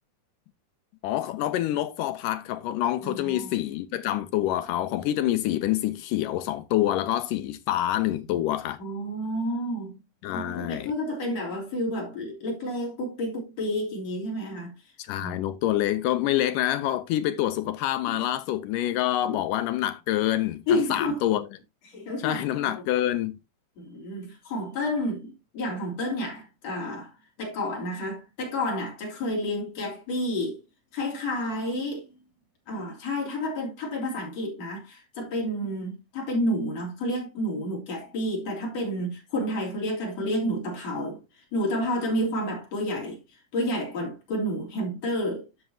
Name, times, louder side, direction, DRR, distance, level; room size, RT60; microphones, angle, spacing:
voice 1, 1.0-8.8 10.2-10.9 15.0-21.5 22.2-23.4, left 13 dB, 80° left, 2.1 m, -27 dB
voice 2, 3.0-3.6 8.8-10.0 10.3-14.7 15.2-15.4 18.1-18.2 19.2-19.4 20.7-21.2 21.9-22.8 23.8-27.1 27.4-30.6 30.9-32.1 32.7-41.2 41.5-45.5, left 1 dB, 50° left, 4.2 m, -30 dB
11.0 x 6.9 x 2.8 m
omnidirectional pair, 4.0 m